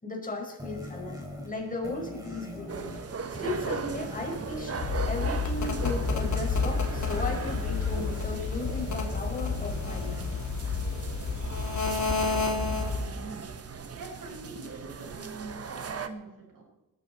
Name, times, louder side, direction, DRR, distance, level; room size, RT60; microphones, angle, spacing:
voice 1, 0.0-2.9 3.4-4.8 5.0-10.2, left 2 dB, 25° left, 1 dB, 4.8 m, -36 dB
sound 1, 0.6-11.4, equal, 10° right, 5.2 m, -42 dB
sound 2, 2.7-16.1, right 5 dB, 45° right, 1.3 m, -39 dB
sound 3, 4.8-13.1, left 4 dB, 55° left, 3.0 m, -30 dB
voice 2, 12.1-13.5 13.9-16.6, right 3 dB, 70° right, 0 dB, 6.6 m, -44 dB
20.5 x 13.5 x 4.3 m, 0.97 s
cardioid pair, 110°, 34 cm